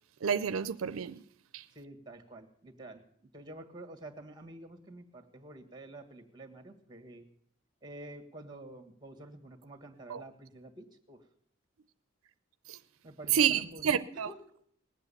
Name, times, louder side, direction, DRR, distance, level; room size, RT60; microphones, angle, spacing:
voice 1, 0.2-1.2 1.5-1.6 10.1-10.2 12.7-12.8 13.3-14.3, right 8 dB, 85° right, 0.5 m, -29 dB
voice 2, 1.8-7.3 7.8-11.2 13.0-14.4, right 1 dB, 20° right, 1.7 m, -49 dB
19.5 x 8.2 x 6.9 m
head